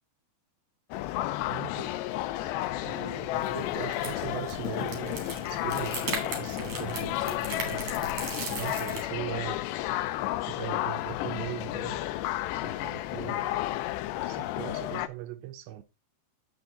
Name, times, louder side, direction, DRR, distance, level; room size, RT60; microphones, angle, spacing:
sound 1, 0.9-15.1, left 15 dB, 80° left, 2.5 m, -32 dB
voice 1, 1.5-1.9 2.8-8.0 8.5-9.6 10.5-12.0 12.5-13.6 14.3-15.8, right 14 dB, 80° right, 2.9 m, -40 dB
sound 2, 3.3-9.0, right 4 dB, 40° right, 3.5 m, -38 dB
8.5 x 6.9 x 4.0 m
omnidirectional pair, 5.4 m